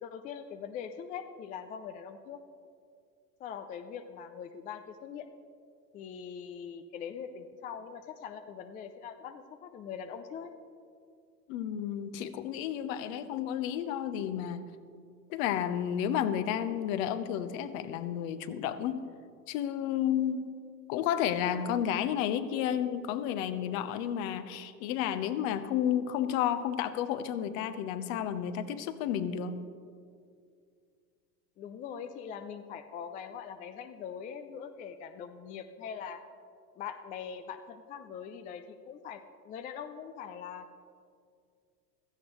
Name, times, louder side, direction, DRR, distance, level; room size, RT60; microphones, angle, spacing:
voice 1, 0.0-2.4 3.4-5.3 5.9-10.5 31.6-36.2 36.8-40.7, left 7 dB, 20° left, 9 dB, 0.3 m, -42 dB
voice 2, 11.5-14.7 15.3-19.0 19.5-20.5 20.9-29.6, left 9 dB, 55° left, 12 dB, 0.9 m, -31 dB
16.0 x 13.5 x 3.1 m, 2.3 s
hypercardioid pair, 85°, 49 cm